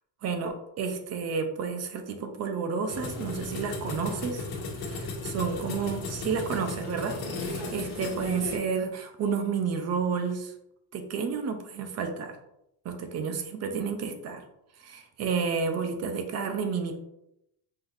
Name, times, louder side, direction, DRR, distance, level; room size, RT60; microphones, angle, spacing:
voice 1, 0.2-4.5 4.8-10.5 10.9-12.4 12.8-14.4 14.8-17.0, right 5 dB, 35° right, 6 dB, 0.7 m, -31 dB
sound 1, 2.9-8.6, left 3 dB, 60° left, 1.4 m, -35 dB
5.8 x 3.2 x 2.6 m, 0.83 s
cardioid pair, 155°, 43 cm